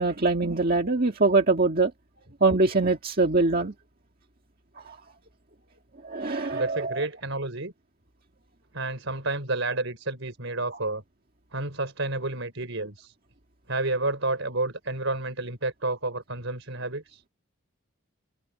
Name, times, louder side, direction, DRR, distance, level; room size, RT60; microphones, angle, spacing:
voice 1, 0.0-1.9 2.4-3.7 4.9-5.0 6.0-7.0, right 3 dB, 40° right, 1.9 m, -23 dB
voice 2, 6.5-7.7 8.7-11.0 11.5-13.1 13.7-17.2, right 2 dB, 60° right, 4.7 m, -30 dB
head